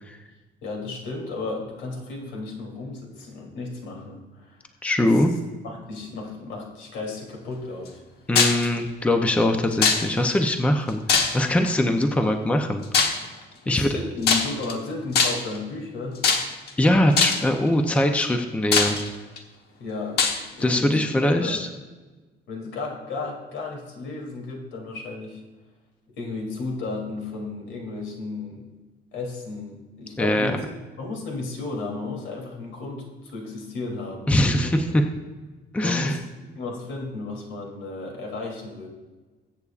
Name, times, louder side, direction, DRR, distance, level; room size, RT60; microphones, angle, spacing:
voice 1, 0.6-4.6 5.0-5.2 5.6-8.0 13.6-16.2 19.8-20.2 20.5-21.6 22.5-25.4 26.1-28.7 29.1-30.6 31.0-34.7 35.8-36.2 36.5-38.9, left 3 dB, 85° left, 0 dB, 2.9 m, -34 dB
voice 2, 4.8-5.3 8.3-12.8 13.7-13.9 16.8-19.0 20.6-21.7 30.2-30.6 34.3-35.0 35.7-36.2, left 1 dB, 5° left, 5 dB, 0.6 m, -22 dB
sound 1, 8.4-8.7 9.8-10.3 11.1-11.6 12.9-13.3 14.2-14.7 15.1-15.6 16.2-16.7 17.2-17.5 18.2-18.3 18.7-19.4 20.2-20.4, left 5 dB, 60° left, 1.2 m, -21 dB
20.5 x 8.2 x 2.4 m, 1.3 s
cardioid pair, 180°, 19 cm